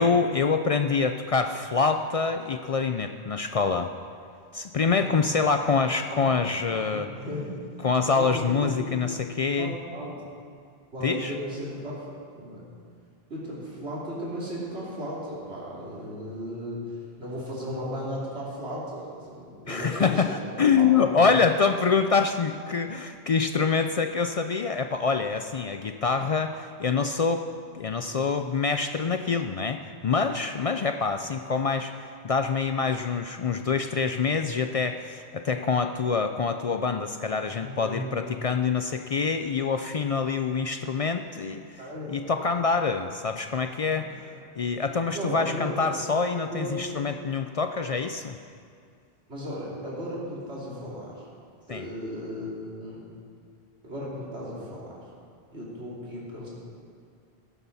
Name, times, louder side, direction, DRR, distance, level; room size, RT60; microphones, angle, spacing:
voice 1, 0.0-3.9 4.5-7.1 7.8-9.7 11.0-11.3 19.7-27.4 27.7-31.9 32.2-41.8 42.1-44.1 44.6-48.4 51.7-51.9, left 5 dB, 55° left, 7 dB, 0.4 m, -25 dB
voice 2, 6.7-7.6 8.1-8.9 9.6-10.2 10.9-12.1 12.4-12.6 13.3-16.8 17.2-20.2 20.5-21.3 37.6-38.3 41.8-42.5 43.9-44.4 45.0-45.8 46.3-47.0 49.3-51.3 51.7-53.0 53.8-55.0 55.5-56.5, equal, 85° right, -7 dB, 3.4 m, -36 dB
15.0 x 11.0 x 4.1 m, 2.2 s
omnidirectional pair, 1.1 m